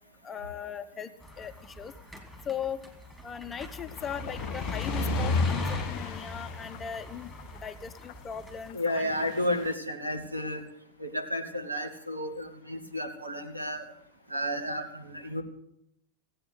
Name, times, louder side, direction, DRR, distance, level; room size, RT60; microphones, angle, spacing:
voice 1, 0.2-1.9 2.4-2.8 3.2-7.3 7.6-9.1, left 8 dB, 20° left, 10 dB, 0.8 m, -38 dB
sound 1, 1.2-8.7, left 1 dB, ahead, 2.8 m, -35 dB
sound 2, 3.6-8.3 8.6-9.7, left 14 dB, 50° left, 0.5 m, -39 dB
voice 2, 8.7-10.6 11.0-13.8 14.3-15.4, left 1 dB, 85° right, 5 dB, 1.7 m, -32 dB
17.0 x 8.9 x 8.0 m, 0.78 s
figure-of-eight pair, 90°, 0 cm